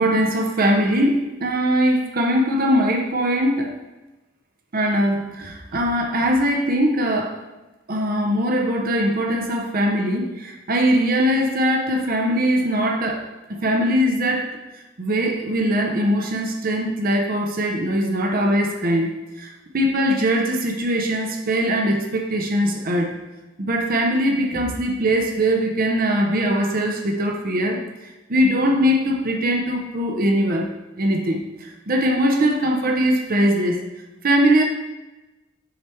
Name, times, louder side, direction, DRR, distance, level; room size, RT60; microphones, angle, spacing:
voice 1, 0.0-3.7 4.7-7.4 7.9-14.6 15.0-23.1 23.6-27.8 28.3-30.7 31.0-33.8 34.2-34.6, equal, 50° right, 2 dB, 0.8 m, -21 dB
6.5 x 3.3 x 4.4 m, 1.1 s
head